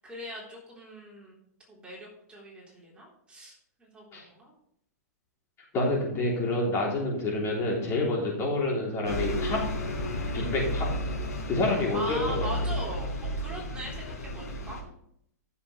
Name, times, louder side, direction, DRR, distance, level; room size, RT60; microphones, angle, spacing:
voice 1, 0.0-1.4 1.7-4.5 11.9-14.8, equal, 10° right, -4 dB, 3.8 m, -40 dB
voice 2, 5.7-9.6 10.3-10.9 11.5-12.5, left 2 dB, 30° left, -2 dB, 3.3 m, -28 dB
Bus, 9.0-14.8, equal, 70° left, 4.0 m, -32 dB
14.5 x 7.1 x 3.3 m, 0.71 s
hypercardioid pair, 130°, 9 cm